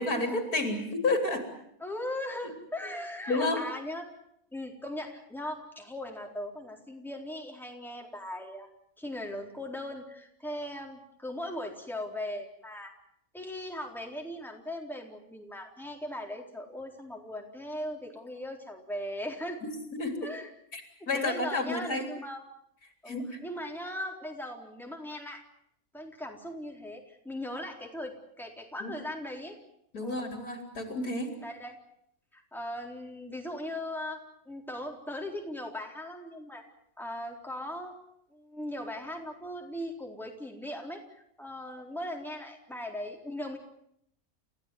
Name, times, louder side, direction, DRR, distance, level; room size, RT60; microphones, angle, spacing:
voice 1, 0.0-1.5 3.3-3.6 19.9-20.3 20.7-20.8 21.1-22.0 23.1-23.4 28.8-28.9 29.9-31.3, left 2 dB, 75° left, 5 dB, 4.2 m, -30 dB
voice 2, 1.8-4.1 4.5-8.7 9.0-12.9 13.3-19.6 20.2-20.5 21.0-22.4 23.0-25.4 25.9-29.6 30.0-30.2 31.4-31.8 32.3-36.6 37.0-37.9 38.3-41.0 41.4-43.6, left 1 dB, ahead, 1 dB, 4.0 m, -39 dB
29.5 x 16.0 x 9.5 m, 0.74 s
omnidirectional pair, 1.6 m